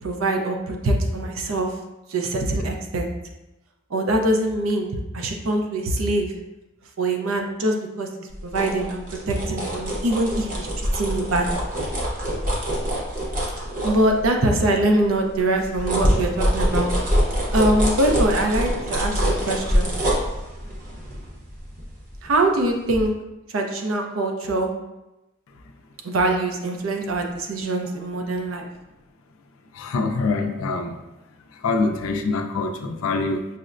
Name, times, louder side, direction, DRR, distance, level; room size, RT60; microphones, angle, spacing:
voice 1, 0.0-1.7 2.1-3.1 3.9-4.9 5.1-6.3 7.0-11.7 13.8-16.9 17.5-19.9 22.2-23.1 23.5-24.7 26.0-28.7, right 1 dB, 75° right, 3 dB, 0.5 m, -23 dB
sound 1, 8.3-14.6 15.0-22.6 22.9-23.1, equal, 40° right, 0.8 m, -25 dB
voice 2, 29.8-31.0 31.6-33.5, left 3 dB, 70° left, 6 dB, 0.4 m, -24 dB
5.5 x 2.1 x 2.4 m, 0.97 s
head